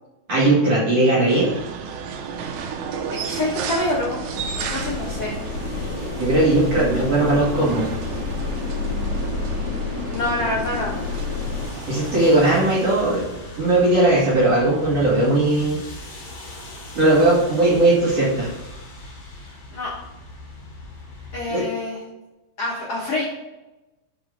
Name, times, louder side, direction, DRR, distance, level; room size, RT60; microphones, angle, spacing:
voice 1, 0.3-1.5 6.1-7.9 11.9-13.2 13.6-15.8 16.9-18.5 21.5-21.6, right 2 dB, 50° right, -7 dB, 1.9 m, -18 dB
sound 1, 1.3-12.6, right 5 dB, 75° right, 2.9 m, -32 dB
voice 2, 3.1-4.2 4.6-5.4 9.9-11.0 19.4-19.9 21.3-22.0 22.6-23.2, left 2 dB, 65° left, -5 dB, 1.5 m, -26 dB
sound 2, 4.2-21.4, equal, 50° left, 1.4 m, -39 dB
sound 3, 4.4-11.7, left 6 dB, 80° left, 2.2 m, -30 dB
6.8 x 6.0 x 5.0 m, 1.0 s
omnidirectional pair, 5.2 m